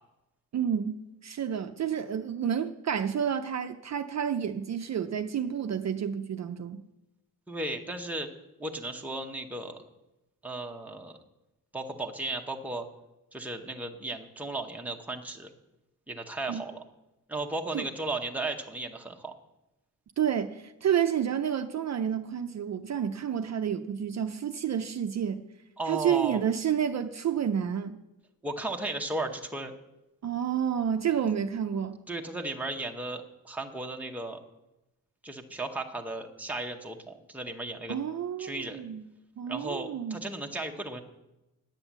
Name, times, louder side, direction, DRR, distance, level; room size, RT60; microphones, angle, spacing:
voice 1, 0.5-6.8 16.5-16.6 17.7-17.9 20.2-25.4 25.9-28.0 30.2-32.0 37.9-39.0 39.4-40.2, right 8 dB, 50° right, 7 dB, 0.5 m, -30 dB
voice 2, 7.5-8.3 8.6-9.8 10.4-11.2 11.7-12.9 13.3-15.5 16.1-16.8 17.3-19.3 25.8-26.4 28.4-29.7 32.1-34.4 35.2-38.0 38.4-38.8 39.5-41.0, right 2 dB, 5° right, 2 dB, 0.9 m, -35 dB
9.8 x 8.9 x 7.3 m, 0.95 s
wide cardioid pair, 165°, 35 cm